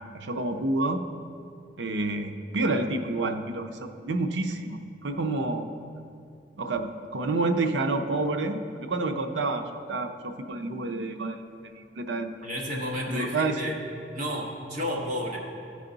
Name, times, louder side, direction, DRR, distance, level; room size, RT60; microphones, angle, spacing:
voice 1, 0.1-1.0 1.8-5.7 6.6-11.4 11.6-12.3 13.1-13.6, right 2 dB, 85° right, 7 dB, 0.6 m, -29 dB
voice 2, 12.4-13.8 14.1-15.4, equal, 45° right, -2 dB, 1.4 m, -31 dB
14.0 x 4.9 x 3.9 m, 2.4 s
head